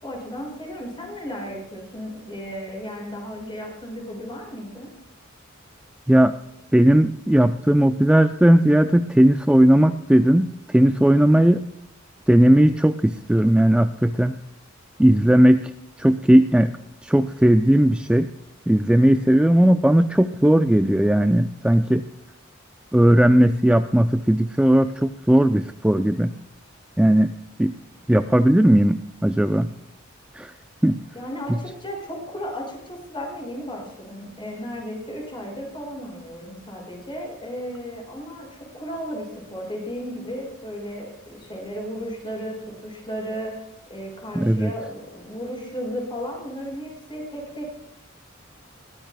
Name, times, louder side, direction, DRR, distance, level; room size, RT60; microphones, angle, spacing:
voice 1, 0.0-4.9 31.1-42.6 42.8-43.5 43.9-47.7, equal, 25° left, 0 dB, 5.7 m, -34 dB
voice 2, 6.7-11.7 12.3-14.4 15.0-15.7 16.0-16.7 17.0-18.3 18.7-22.0 22.9-26.3 27.0-27.3 27.6-27.7 28.1-29.7 30.3-30.5 30.8-31.0 31.5-31.6 44.3-44.7, right 1 dB, 5° right, 9 dB, 0.4 m, -17 dB
21.5 x 15.0 x 2.2 m, 0.82 s
head